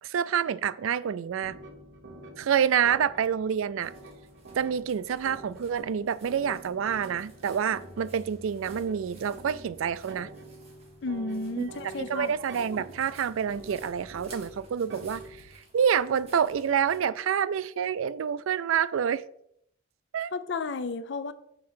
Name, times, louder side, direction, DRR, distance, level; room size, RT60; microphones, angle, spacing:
voice 1, 0.0-1.6 2.4-3.9 4.5-10.3 11.6-11.7 12.0-15.5 15.7-19.2 20.1-20.3, right 8 dB, 85° right, 0.4 m, -27 dB
sound 1, 1.4-15.6, right 1 dB, 60° right, 0.9 m, -46 dB
sound 2, 3.8-17.0, right 2 dB, 30° right, 2.1 m, -56 dB
voice 2, 11.0-12.3 20.3-21.3, left 3 dB, 60° left, 0.6 m, -32 dB
6.7 x 4.2 x 5.7 m
head